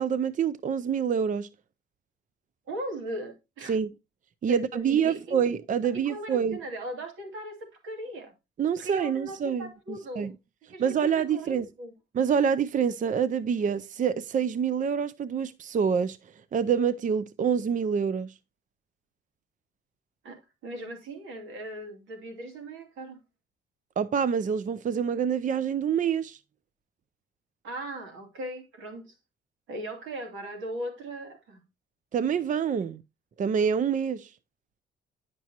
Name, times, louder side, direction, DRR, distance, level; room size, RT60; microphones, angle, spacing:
voice 1, 0.0-1.5 3.7-3.9 4.4-6.6 8.6-10.3 10.8-11.7 12.1-16.2 16.5-18.3 24.0-26.4 32.1-33.0 33.4-34.3, right 7 dB, 40° right, 0.5 m, -26 dB
voice 2, 2.7-3.7 4.5-5.4 5.9-8.3 8.8-10.3 10.7-11.9 20.2-23.2 27.6-29.1 29.7-31.6, right 1 dB, 80° right, 2.7 m, -38 dB
10.5 x 6.0 x 2.9 m
cardioid pair, 90°, 20 cm